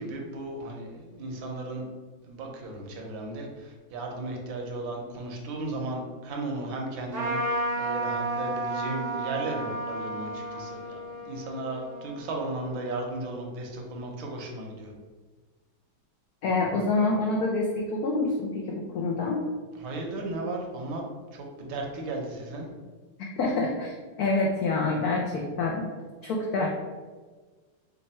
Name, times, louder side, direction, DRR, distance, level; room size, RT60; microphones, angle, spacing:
voice 1, 0.0-1.9 2.2-14.9 19.8-21.0 21.3-22.7, right 2 dB, 75° right, 1 dB, 1.5 m, -35 dB
Trumpet, 7.1-12.9, right 1 dB, 45° right, 0.7 m, -32 dB
voice 2, 16.4-19.4 23.4-25.9 26.2-26.7, left 3 dB, 80° left, -1 dB, 0.8 m, -27 dB
5.3 x 2.2 x 4.2 m, 1.4 s
omnidirectional pair, 2.2 m